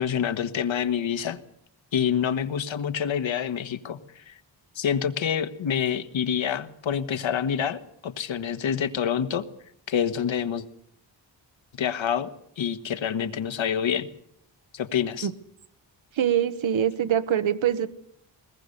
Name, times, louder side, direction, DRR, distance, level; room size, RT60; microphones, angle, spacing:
voice 1, 0.0-1.4 1.9-4.4 4.7-9.4 9.9-10.6 11.8-12.3 12.6-14.1 14.7-15.3, left 8 dB, 80° left, 10 dB, 1.5 m, -27 dB
voice 2, 16.1-17.9, right 9 dB, 90° right, 12 dB, 1.3 m, -24 dB
21.5 x 19.5 x 6.6 m, 0.74 s
wide cardioid pair, 140°, 45 cm